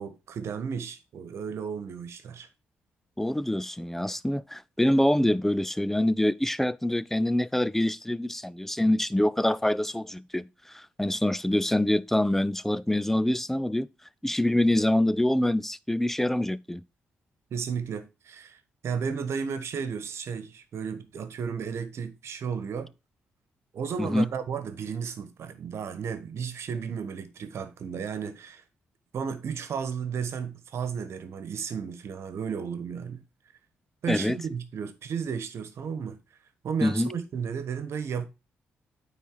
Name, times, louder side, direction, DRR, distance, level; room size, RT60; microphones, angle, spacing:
voice 1, 0.0-2.5 17.5-22.9 23.7-28.6 29.1-33.2 34.0-36.2 36.6-38.3, right 6 dB, 65° right, 1.3 m, -33 dB
voice 2, 3.2-13.9 14.2-16.8 24.0-24.3 34.1-34.4 36.8-37.1, left 1 dB, 5° left, 0.5 m, -25 dB
9.3 x 4.1 x 4.7 m
supercardioid pair, 50°, 5 cm